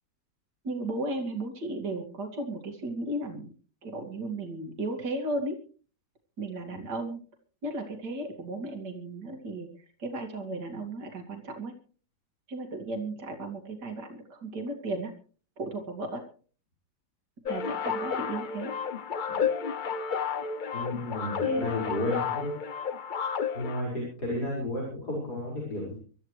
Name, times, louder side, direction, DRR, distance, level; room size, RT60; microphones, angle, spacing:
voice 1, 0.6-3.5 3.8-5.5 6.4-7.2 7.6-9.7 10.0-11.7 12.5-15.1 15.6-16.2 17.5-18.7 21.4-21.6, right 2 dB, 75° right, 4 dB, 2.9 m, -34 dB
sound 1, 17.4-23.8, left 6 dB, 50° left, 0.6 m, -31 dB
voice 2, 20.7-22.6 23.5-25.9, left 1 dB, 65° left, -4 dB, 5.9 m, -32 dB
25.0 x 13.5 x 3.2 m, 0.40 s
omnidirectional pair, 1.8 m